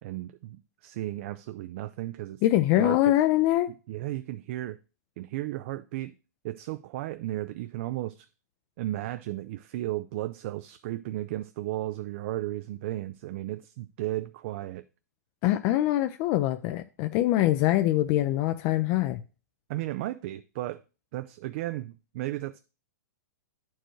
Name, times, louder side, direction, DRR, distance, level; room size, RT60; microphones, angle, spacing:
voice 1, 0.0-2.4 2.8-3.1 3.9-4.8 5.2-6.1 6.4-8.3 8.8-14.8 19.7-20.8 21.1-22.6, right 15 dB, 50° right, 0.3 m, -34 dB
voice 2, 2.4-3.7 15.4-19.2, left 14 dB, 40° left, 0.4 m, -24 dB
9.9 x 4.5 x 3.1 m
hypercardioid pair, 115°, 9 cm